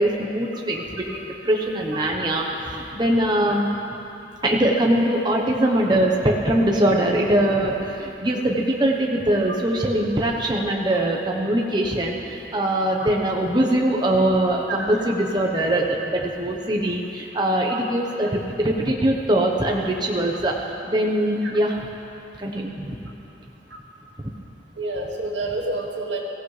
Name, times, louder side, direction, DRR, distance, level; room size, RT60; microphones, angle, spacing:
voice 1, 0.0-3.7 4.4-21.9 22.4-23.0 24.2-24.3, right 1 dB, 25° right, -1 dB, 1.0 m, -22 dB
voice 2, 24.8-26.2, right 2 dB, 85° right, -2 dB, 2.2 m, -29 dB
24.0 x 16.0 x 3.3 m, 2.9 s
head